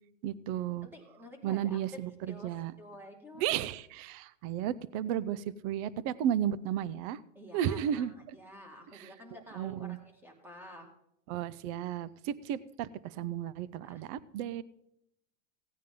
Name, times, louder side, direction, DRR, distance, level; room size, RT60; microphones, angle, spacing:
voice 1, 0.2-0.9 1.4-2.7 3.4-7.2 7.5-8.1 8.9-9.1 9.5-10.0 11.3-14.6, right 10 dB, 30° right, 19 dB, 0.4 m, -33 dB
voice 2, 0.8-2.0 2.3-3.5 7.3-10.9 13.8-14.0, left 1 dB, 5° right, 3 dB, 2.1 m, -50 dB
16.5 x 9.1 x 3.7 m, 0.79 s
hypercardioid pair, 130°, 39 cm